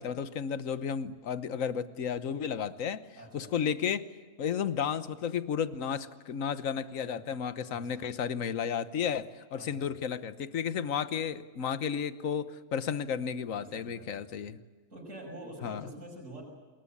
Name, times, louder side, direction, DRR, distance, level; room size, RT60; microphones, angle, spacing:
voice 1, 0.0-3.0 3.3-4.1 4.4-14.6 15.6-15.8, left 7 dB, 70° left, 13 dB, 1.5 m, -33 dB
voice 2, 3.2-3.5 7.7-8.1 9.5-9.9 13.6-14.5 14.9-16.4, right 1 dB, 65° right, -1 dB, 6.5 m, -47 dB
27.0 x 21.0 x 8.6 m, 1.4 s
omnidirectional pair, 1.4 m